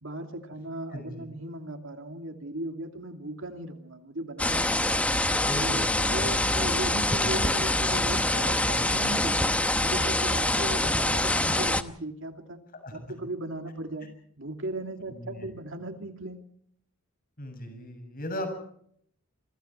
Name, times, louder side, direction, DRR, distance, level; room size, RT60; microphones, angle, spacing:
voice 1, 0.0-5.1 5.6-9.5 9.8-12.6 12.9-14.1 14.4-16.4, right 1 dB, 60° right, 6 dB, 2.7 m, -37 dB
voice 2, 0.9-1.3 5.4-6.0 11.5-11.6 12.8-13.0 15.1-15.5 17.4-18.5, left 1 dB, 40° left, 7 dB, 7.2 m, -37 dB
sound 1, 4.4-11.8, left 1 dB, 5° left, 1.0 m, -25 dB
28.0 x 24.5 x 4.6 m, 0.66 s
head